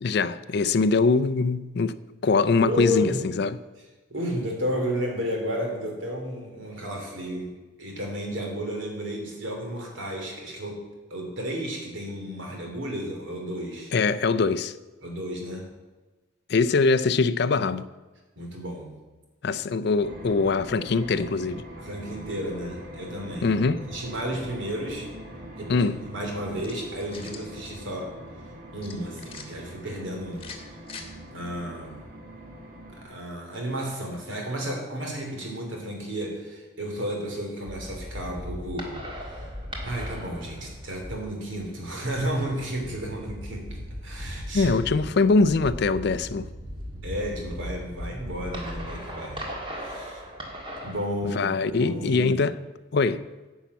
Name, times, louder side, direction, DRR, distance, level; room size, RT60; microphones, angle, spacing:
voice 1, 0.0-3.6 13.9-14.7 16.5-17.9 19.4-21.6 23.4-23.8 25.7-26.0 44.5-46.5 51.3-52.5 52.9-53.2, left 4 dB, 55° left, 0.4 m, -23 dB
voice 2, 2.6-3.2 4.1-7.5 7.8-10.8 11.1-13.9 15.0-15.7 18.4-18.9 21.8-23.5 23.8-25.1 25.6-28.2 28.7-30.4 31.3-32.0 33.0-39.5 39.8-44.7 47.0-49.4 49.8-50.2 50.8-52.3, equal, 70° right, 2.9 m, -32 dB
sound 1, 20.0-33.1, right 1 dB, 45° right, 2.2 m, -43 dB
sound 2, 26.6-27.5 28.8-29.5 30.3-31.1, left 5 dB, 25° left, 1.3 m, -43 dB
sound 3, 37.7-51.1, equal, 25° right, 1.6 m, -38 dB
10.0 x 5.6 x 8.2 m
head